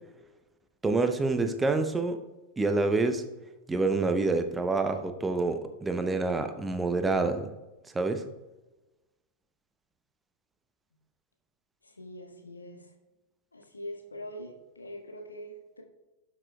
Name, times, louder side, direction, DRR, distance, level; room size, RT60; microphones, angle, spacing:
voice 1, 0.8-2.2 2.6-3.2 3.7-7.5 7.9-8.2, right 3 dB, 10° right, 8 dB, 0.7 m, -27 dB
voice 2, 11.8-12.9 13.5-15.8, equal, 80° left, 3 dB, 1.1 m, -43 dB
11.5 x 6.4 x 2.3 m, 1.1 s
figure-of-eight pair, 90°, 0 cm